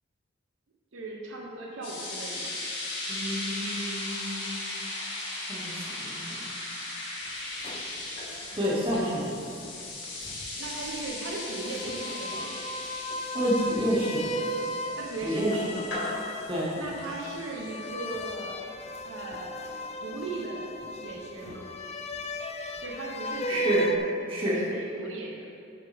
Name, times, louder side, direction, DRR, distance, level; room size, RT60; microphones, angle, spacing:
voice 1, 0.9-2.5 10.6-12.6 15.0-16.3 16.8-18.6 19.0-19.6 20.0-20.7 21.0-21.7 22.8-23.8 24.4-25.5, right 3 dB, 80° right, -2 dB, 0.9 m, -38 dB
sound 1, 1.8-18.3, left 2 dB, 65° left, 2.1 m, -37 dB
voice 2, 3.1-4.7 5.5-5.7 6.0-6.5 8.5-9.2 13.3-14.2 15.2-15.6 16.5-16.7 23.5-23.9 24.3-24.6, equal, 25° right, -6 dB, 2.0 m, -28 dB
sound 2, 7.4-9.9 10.2-24.0, equal, 35° left, 0.4 m, -36 dB
9.6 x 7.1 x 3.6 m, 2.4 s
head